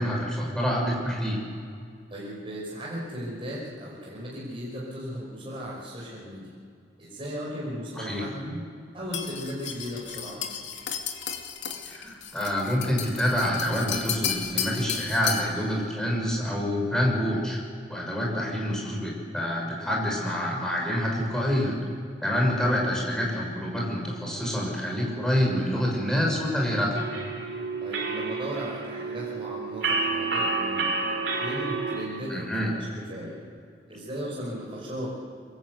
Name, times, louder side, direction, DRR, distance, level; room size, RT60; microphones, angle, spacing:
voice 1, 0.0-1.4 8.0-8.2 11.8-17.6 17.9-21.7 22.2-27.0 32.3-32.7, equal, 5° left, -2 dB, 6.4 m, -27 dB
voice 2, 2.1-6.5 7.0-8.7 8.9-10.4 12.0-12.1 18.2-18.6 22.3-22.5 27.8-30.9 31.2-33.4 33.9-35.1, equal, 30° right, -5 dB, 5.3 m, -36 dB
sound 1, 9.1-15.6, left 8 dB, 85° left, 2.4 m, -33 dB
sound 2, 26.9-32.1, right 3 dB, 70° right, 4.1 m, -29 dB
26.0 x 23.5 x 8.1 m, 2.3 s
head